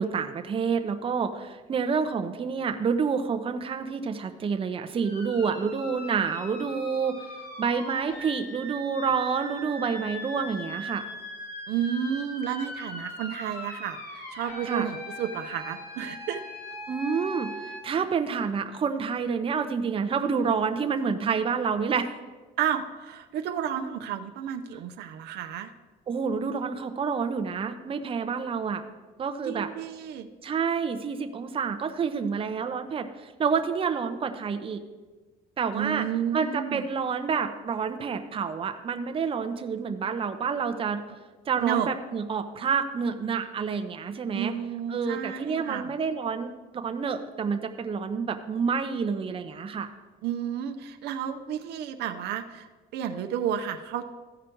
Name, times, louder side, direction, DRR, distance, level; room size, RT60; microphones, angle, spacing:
voice 1, 0.0-7.3 7.6-11.1 14.6-14.9 16.9-22.1 26.1-28.8 29.2-29.7 30.4-34.8 35.6-36.1 36.3-41.0 41.5-44.5 44.9-49.9, right 6 dB, 35° right, 7 dB, 0.7 m, -28 dB
sound 1, 5.0-17.8, left 1 dB, 55° left, 2.1 m, -40 dB
voice 2, 11.7-16.4 22.6-25.7 29.4-30.3 35.7-36.8 41.6-41.9 44.3-45.9 50.2-54.1, right 9 dB, 75° right, 6 dB, 0.7 m, -31 dB
15.0 x 5.0 x 4.5 m, 1.3 s
cardioid pair, 110°, 17 cm